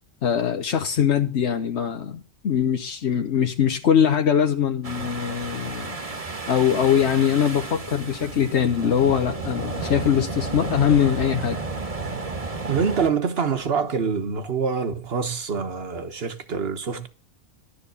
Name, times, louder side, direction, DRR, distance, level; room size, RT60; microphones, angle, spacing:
voice 1, 0.2-6.0 6.5-11.6, left 8 dB, 85° left, 1.2 m, -22 dB
sound 1, 4.8-13.1, right 3 dB, 35° right, 1.2 m, -32 dB
voice 2, 12.7-17.1, right 5 dB, 65° right, 1.4 m, -25 dB
11.5 x 7.0 x 6.8 m
omnidirectional pair, 1.1 m